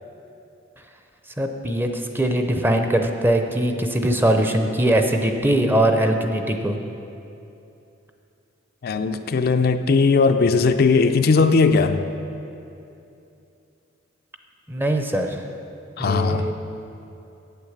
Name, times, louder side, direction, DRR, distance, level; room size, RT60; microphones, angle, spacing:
voice 1, 1.4-6.8 14.7-15.4 16.0-16.5, right 1 dB, 10° right, 5 dB, 0.6 m, -21 dB
voice 2, 8.8-12.0 16.0-16.5, left 4 dB, 50° left, 7 dB, 0.4 m, -18 dB
8.8 x 8.0 x 7.2 m, 2.7 s
head